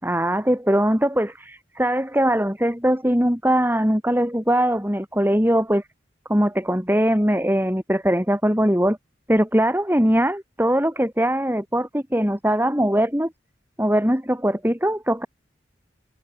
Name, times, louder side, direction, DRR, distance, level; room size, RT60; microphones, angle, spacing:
voice 1, 0.0-5.8 6.3-9.0 9.3-13.3 13.8-15.3, equal, 10° right, 5.6 m, -21 dB
head